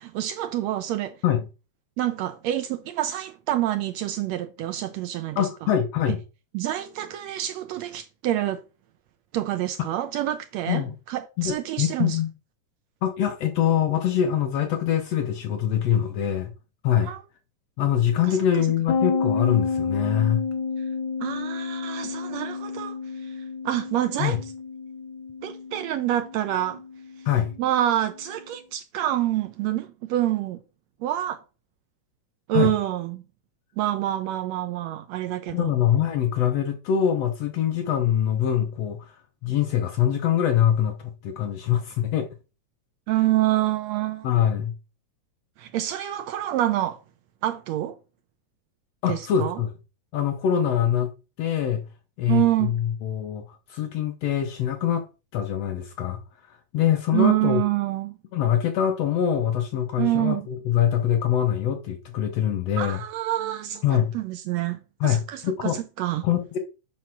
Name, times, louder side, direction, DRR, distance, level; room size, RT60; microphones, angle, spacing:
voice 1, 0.0-1.2 2.0-5.5 6.5-8.6 9.3-12.2 17.0-17.2 18.3-18.7 21.2-23.0 23.3-23.4 23.7-24.4 25.4-26.8 27.6-30.6 31.0-31.4 32.5-33.2 33.8-35.7 43.1-44.3 45.6-47.0 47.4-48.0 49.1-49.6 52.3-52.7 57.1-58.2 60.0-60.5 62.8-66.2, right 13 dB, 80° right, 1.6 m, -27 dB
voice 2, 5.4-6.2 10.7-11.0 11.4-12.3 13.0-16.5 16.8-17.1 17.8-20.4 24.2-24.4 27.3-27.5 32.5-32.7 35.5-39.2 39.4-42.3 44.2-44.7 49.0-49.7 50.1-51.1 51.4-51.8 52.2-55.1 55.3-56.2 56.5-57.6 58.3-63.0 63.8-64.1 65.0-65.8 66.2-66.6, left 10 dB, 70° left, 1.7 m, -24 dB
sound 1, 18.9-28.3, left 5 dB, 50° left, 1.5 m, -31 dB
7.6 x 4.8 x 5.8 m
omnidirectional pair, 3.6 m